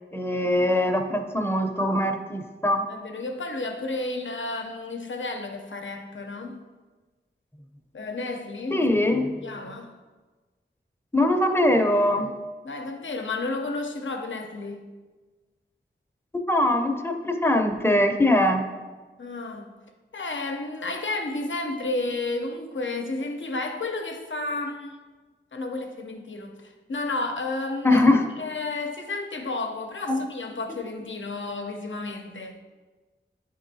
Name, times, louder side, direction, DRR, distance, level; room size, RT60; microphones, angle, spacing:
voice 1, 0.1-2.8 8.7-9.4 11.1-12.3 16.3-18.7 27.8-28.3 30.1-30.2, left 1 dB, 10° left, 0.6 m, -22 dB
voice 2, 2.9-6.6 7.9-8.9 9.3-9.9 12.6-14.8 19.2-19.7 20.1-25.0 25.5-28.0 28.4-32.6, left 2 dB, 70° left, 0.6 m, -32 dB
9.5 x 3.8 x 2.7 m
wide cardioid pair, 45°, 20 cm